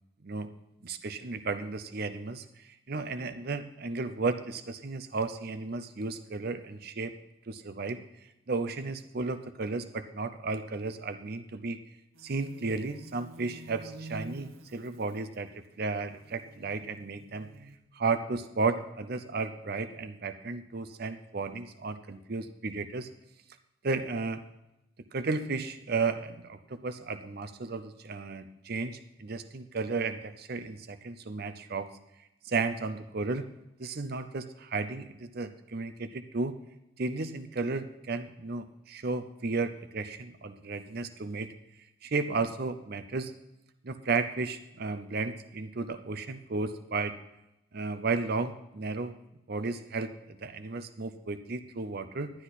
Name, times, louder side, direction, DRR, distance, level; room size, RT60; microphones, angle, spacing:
voice 1, 0.8-7.1 7.5-8.0 8.5-11.8 12.2-15.5 15.8-17.5 17.9-23.1 23.8-24.4 25.1-31.9 32.4-33.5 33.8-36.6 37.0-41.5 42.0-43.3 43.8-47.2 47.7-49.1 49.5-52.3, right 3 dB, 45° right, 10 dB, 0.6 m, -33 dB
sound 1, 12.1-17.8, right 2 dB, 75° right, 0.9 m, -49 dB
11.5 x 10.0 x 4.1 m, 0.88 s
head